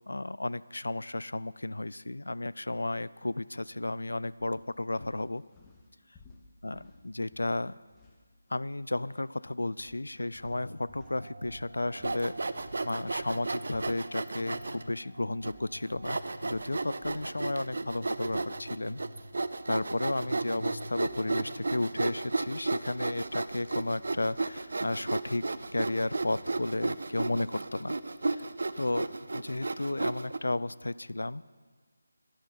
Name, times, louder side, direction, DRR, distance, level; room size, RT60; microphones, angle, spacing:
voice 1, 0.1-5.4 6.6-7.8 8.5-12.3 12.8-19.0 19.7-25.4 25.7-28.0 28.3-28.4 28.8-31.4, left 2 dB, 85° left, 19 dB, 0.4 m, -33 dB
sound 1, 3.7-3.9 4.3-8.8 9.0-9.3 9.8-14.9 15.2-18.7, left 4 dB, 10° left, 0.9 m, -59 dB
sound 2, 10.5-22.3, right 1 dB, 35° right, 1.8 m, -49 dB
Sawing, 12.0-14.8 15.4-15.5 16.0-30.4, right 3 dB, 65° right, 0.6 m, -34 dB
11.5 x 9.0 x 5.7 m, 1.5 s
figure-of-eight pair, 165°, 0 cm